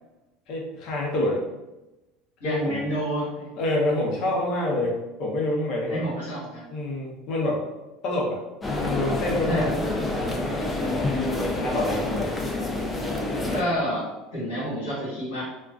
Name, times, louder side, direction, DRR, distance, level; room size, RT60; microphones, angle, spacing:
voice 1, 0.5-1.5 2.4-2.8 3.6-6.0 6.7-7.6 8.0-8.4 8.7-9.7 10.0-10.5 10.8-11.1 11.6-12.3, left 1 dB, 55° left, -1 dB, 0.7 m, -27 dB
voice 2, 2.4-3.5 5.9-6.7 9.5-9.7 10.7-11.1 13.5-15.4, equal, 90° left, -7 dB, 1.2 m, -29 dB
sound 1, 8.6-13.6, left 2 dB, 15° left, 0.4 m, -27 dB
2.3 x 2.3 x 2.4 m, 1.0 s
supercardioid pair, 100°, 0 cm